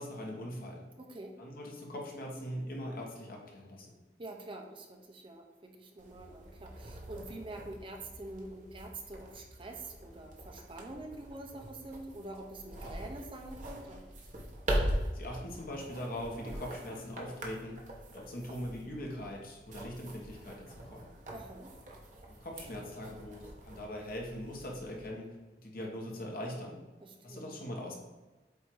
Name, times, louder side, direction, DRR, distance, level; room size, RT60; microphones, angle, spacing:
voice 1, 0.0-0.9 1.4-3.9 15.1-17.8 18.1-21.1 22.3-26.8 27.2-28.0, left 1 dB, 55° left, -1 dB, 1.4 m, -41 dB
voice 2, 1.0-1.4 4.2-14.0 21.3-21.7 27.0-27.5, right 2 dB, 30° right, 2 dB, 0.7 m, -46 dB
sound 1, 6.0-25.1, equal, 45° right, 1.2 m, -42 dB
8.3 x 2.8 x 4.7 m, 1.2 s
head